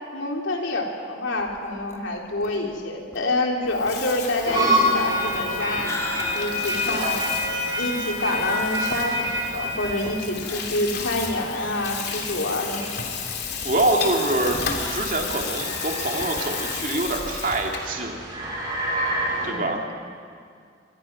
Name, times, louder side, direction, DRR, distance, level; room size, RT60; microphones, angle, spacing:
voice 1, 0.1-6.0 6.3-7.2 7.8-12.9 19.4-19.7, left 2 dB, 90° left, 0 dB, 3.5 m, -27 dB
sound 1, 1.4-11.6 12.0-12.1 12.4-12.5 13.2-17.7, left 1 dB, 15° left, 2.1 m, -41 dB
Water tap faucet / Sink (filling or washing), 3.6-18.0, left 6 dB, 60° left, 3.0 m, -33 dB
sound 2, 4.4-19.5, equal, 20° right, 5.7 m, -29 dB
voice 2, 13.6-18.2 19.4-19.8, right 2 dB, 45° right, 1 dB, 2.8 m, -25 dB
26.0 x 24.0 x 6.1 m, 2.2 s
head